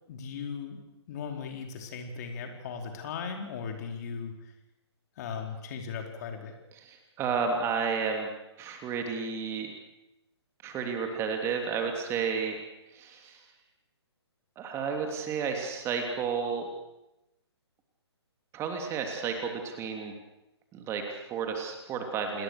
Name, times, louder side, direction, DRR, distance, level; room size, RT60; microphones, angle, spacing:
voice 1, 0.1-0.8 1.1-4.3 5.2-6.5, left 6 dB, 40° left, 3 dB, 4.6 m, -37 dB
voice 2, 6.8-8.3 8.6-9.7 10.6-12.6 12.9-13.4 14.6-16.7 18.5-20.1 20.7-22.4, right 6 dB, 20° right, 3 dB, 3.2 m, -32 dB
28.5 x 21.0 x 6.7 m, 0.92 s
figure-of-eight pair, 135°, 14 cm